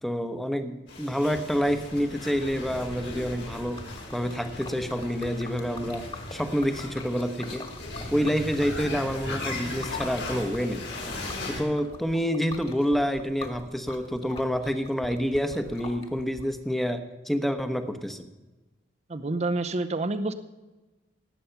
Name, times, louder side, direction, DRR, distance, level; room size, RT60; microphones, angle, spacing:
voice 1, 0.0-3.8 4.1-7.6 8.1-10.9 11.5-18.3, equal, ahead, 8 dB, 1.0 m, -28 dB
sound 1, 0.9-11.6, left 2 dB, 85° left, 4.5 m, -38 dB
Liquid, 3.3-16.4, left 2 dB, 30° left, 1.9 m, -44 dB
voice 2, 19.1-20.3, right 2 dB, 40° right, 11 dB, 0.7 m, -28 dB
18.5 x 8.5 x 5.8 m, 1.1 s
head